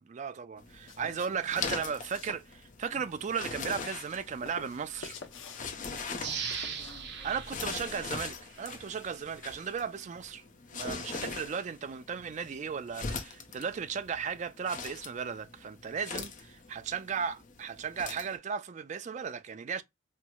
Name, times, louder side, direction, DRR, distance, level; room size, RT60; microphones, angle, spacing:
voice 1, 0.0-5.2 7.2-10.4 10.7-19.8, right 6 dB, 35° right, 0.3 m, -36 dB
sound 1, 0.6-18.4, left 4 dB, 40° left, 0.6 m, -42 dB
sound 2, 0.7-7.3, left 4 dB, 75° left, 0.8 m, -50 dB
voice 2, 0.9-1.9 2.9-3.0 6.1-7.4 10.7-11.4, left 2 dB, 20° left, 0.9 m, -54 dB
sound 3, 6.2-8.9 9.3-9.4, right 6 dB, 60° right, 0.7 m, -39 dB
4.4 x 2.0 x 2.2 m
head